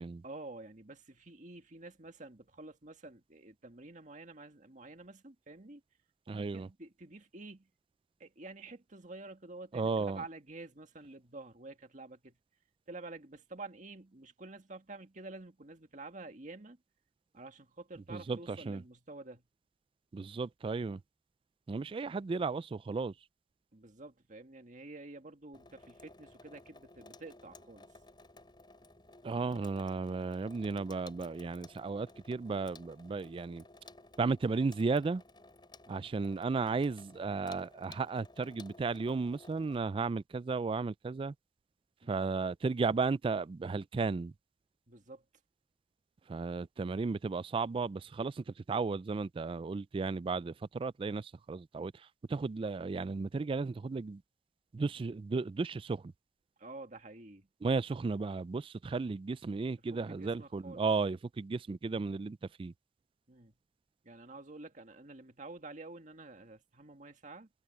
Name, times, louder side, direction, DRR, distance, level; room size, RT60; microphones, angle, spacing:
voice 1, 0.2-5.8 6.3-7.7 8.2-12.4 12.9-16.8 17.3-19.4 23.7-27.9 35.9-36.1 42.0-42.2 44.9-45.2 56.6-57.5 59.8-60.9 63.3-63.5 64.0-67.5, right 2 dB, 45° right, 1.9 m, -49 dB
voice 2, 6.3-6.7 9.7-10.2 18.1-18.8 20.1-21.0 21.7-23.1 29.2-33.6 34.2-35.2 35.9-41.3 42.1-44.3 46.3-51.9 52.3-54.2 54.7-56.1 57.6-62.7, right 4 dB, 30° right, 0.3 m, -34 dB
Water tap faucet / Sink (filling or washing), 25.5-39.8, left 2 dB, 25° left, 7.4 m, -56 dB
head